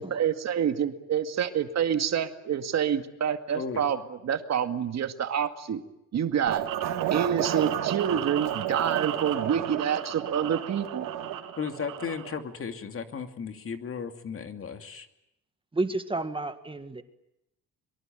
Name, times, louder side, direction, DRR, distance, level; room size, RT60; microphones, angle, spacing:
voice 1, 0.0-4.0 4.2-5.8 6.1-6.6 7.1-11.1, right 8 dB, 55° right, 8 dB, 2.1 m, -27 dB
voice 2, 3.5-3.8 11.6-15.1, left 6 dB, 40° left, 7 dB, 2.6 m, -35 dB
sound 1, 6.5-12.4, right 11 dB, 85° right, 3.1 m, -32 dB
voice 3, 15.7-17.0, right 2 dB, 15° right, 9 dB, 1.8 m, -31 dB
23.5 x 23.5 x 9.1 m, 0.85 s
cardioid pair, 115°, 32 cm